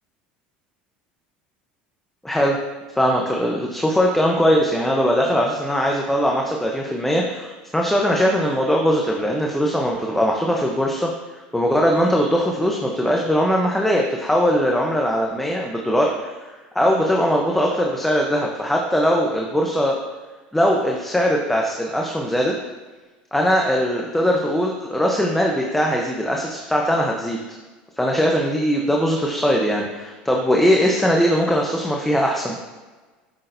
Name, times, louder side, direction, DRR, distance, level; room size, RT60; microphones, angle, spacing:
voice 1, 2.2-2.6 2.9-20.0 20.5-22.5 23.3-27.4 28.0-32.6, equal, 5° left, 0 dB, 0.8 m, -20 dB
8.4 x 6.5 x 2.7 m, 1.3 s
hypercardioid pair, 90°, 5 cm